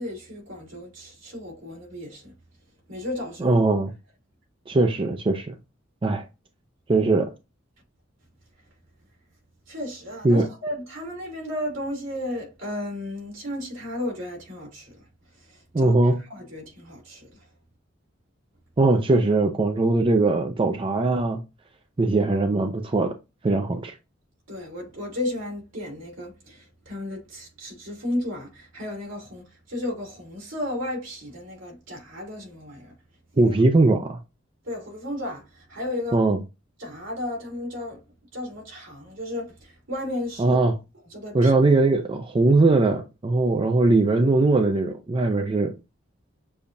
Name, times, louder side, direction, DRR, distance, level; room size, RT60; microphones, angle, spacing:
voice 1, 0.0-2.3 2.9-3.6 4.7-4.8 9.7-15.0 15.3-15.9 16.2-17.3 24.5-32.9 33.3-33.5 34.6-36.2 36.8-38.0 38.3-40.6 41.1-41.5, left 1 dB, 80° right, 2.7 m, -34 dB
voice 2, 3.4-3.9 4.7-5.6 6.0-6.2 6.9-7.3 10.2-10.5 15.7-16.2 18.8-21.4 22.0-23.1 23.4-23.9 33.4-34.2 36.1-36.4 40.4-40.7 41.3-45.7, right 2 dB, 25° right, 0.4 m, -20 dB
6.9 x 2.3 x 2.6 m
head